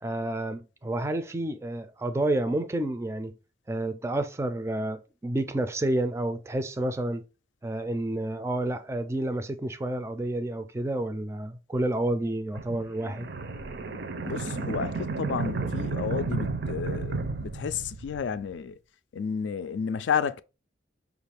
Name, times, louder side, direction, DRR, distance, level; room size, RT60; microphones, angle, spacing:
voice 1, 0.0-3.3 3.7-7.2 7.6-13.3, right 1 dB, 15° right, 0.3 m, -30 dB
sound 1, 12.5-18.4, right 4 dB, 65° right, 0.5 m, -32 dB
voice 2, 14.2-18.8 19.1-20.4, left 6 dB, 80° left, 0.3 m, -31 dB
5.5 x 2.4 x 3.3 m
head